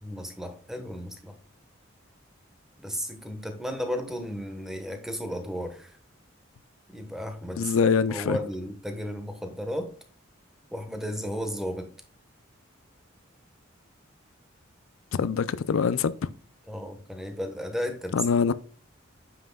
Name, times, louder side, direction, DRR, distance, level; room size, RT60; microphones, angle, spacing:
voice 1, 0.0-1.4 2.8-6.0 6.9-7.8 8.1-9.9 10.7-11.9 16.7-18.2, equal, ahead, 1.1 m, -34 dB
voice 2, 7.6-8.4 15.1-16.1 18.1-18.5, left 6 dB, 85° left, 0.4 m, -24 dB
9.0 x 5.9 x 2.2 m
head